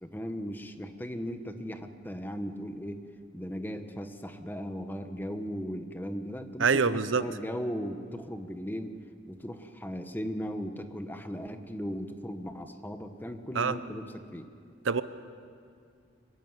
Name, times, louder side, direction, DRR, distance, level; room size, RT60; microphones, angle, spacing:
voice 1, 0.0-3.1 3.3-9.0 9.3-14.5, equal, 10° left, 7 dB, 1.2 m, -37 dB
voice 2, 6.6-7.2 13.6-13.7 14.9-15.0, right 5 dB, 85° right, 14 dB, 0.8 m, -25 dB
25.0 x 14.5 x 9.6 m, 2.3 s
head